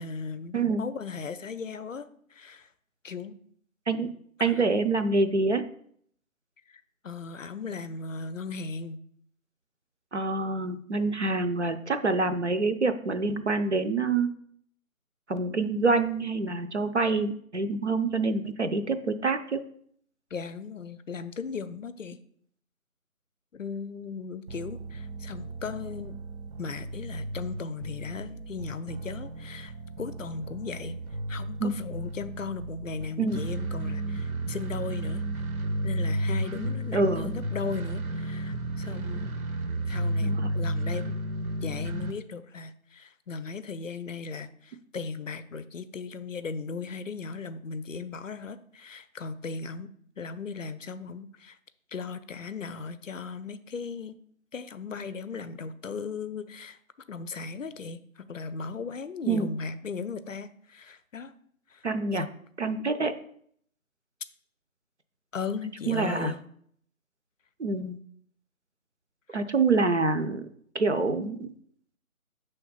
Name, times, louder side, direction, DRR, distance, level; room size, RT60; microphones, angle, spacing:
voice 1, 0.0-2.7 3.0-3.4 4.4-4.6 6.7-9.0 20.3-22.2 23.5-26.2 26.6-31.0 31.3-35.3 35.8-39.3 39.9-41.2 41.6-49.9 50.2-51.6 51.9-54.2 54.5-56.8 57.1-61.3 61.7-61.8 62.1-62.3 65.3-66.4 69.3-69.4, left 5 dB, 65° left, 13 dB, 0.5 m, -37 dB
voice 2, 4.4-5.7 10.1-14.3 15.3-19.6 31.6-31.7 33.2-33.4 36.9-37.3 40.2-40.5 59.3-59.5 61.8-62.3 62.6-63.1 65.9-66.3 67.6-68.0 69.3-70.5 70.7-71.5, right 3 dB, 55° right, 8 dB, 0.5 m, -26 dB
sound 1, 24.5-42.1, right 1 dB, 80° right, 0.9 m, -33 dB
5.7 x 3.4 x 5.5 m, 0.63 s
figure-of-eight pair, 170°, 43 cm